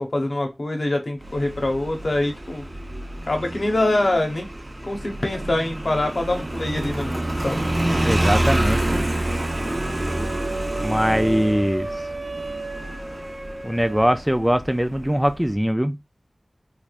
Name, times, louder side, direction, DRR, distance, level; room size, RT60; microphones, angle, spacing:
voice 1, 0.0-2.7 3.3-4.5 4.8-7.6, left 1 dB, 60° left, 0.9 m, -24 dB
Motorcycle, 1.2-15.5, right 1 dB, 40° right, 0.8 m, -28 dB
voice 2, 8.0-9.0 10.8-11.9 13.6-16.0, equal, 5° right, 0.3 m, -21 dB
sound 1, 9.2-14.2, right 2 dB, 75° right, 1.2 m, -34 dB
3.3 x 3.3 x 2.4 m
wide cardioid pair, 65°, 0 cm